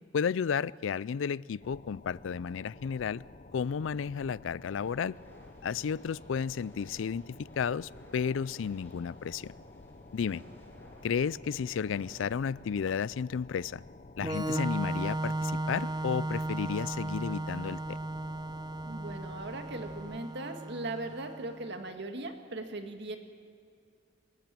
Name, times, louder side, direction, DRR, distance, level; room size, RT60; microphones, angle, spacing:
voice 1, 0.1-3.2 3.5-5.2 5.6-9.5 10.1-10.4 11.0-13.8 14.2-18.0, left 6 dB, 85° left, 22 dB, 0.4 m, -32 dB
sound 1, 1.6-20.2, left 2 dB, 40° left, 0.7 m, -52 dB
sound 2, 4.8-12.5, right 1 dB, 10° left, 6.3 m, -57 dB
Organ, 14.2-21.7, right 2 dB, 20° right, 0.7 m, -35 dB
voice 2, 18.8-23.2, right 2 dB, 65° right, 6 dB, 1.9 m, -39 dB
25.5 x 14.0 x 7.6 m, 2.4 s
head